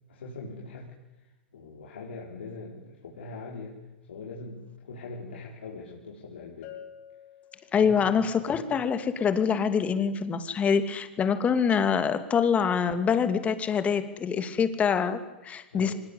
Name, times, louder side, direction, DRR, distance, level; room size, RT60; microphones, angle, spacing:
voice 1, 0.1-0.9 1.5-3.8 4.1-6.8 7.8-8.2 15.7-15.9, left 3 dB, 80° left, -3 dB, 5.3 m, -41 dB
Bell, 6.6-8.3, left 10 dB, 50° left, 6.1 m, -48 dB
voice 2, 7.7-15.9, left 6 dB, 25° left, 10 dB, 2.6 m, -25 dB
24.5 x 20.5 x 8.5 m, 1.1 s
hypercardioid pair, 110°, 6 cm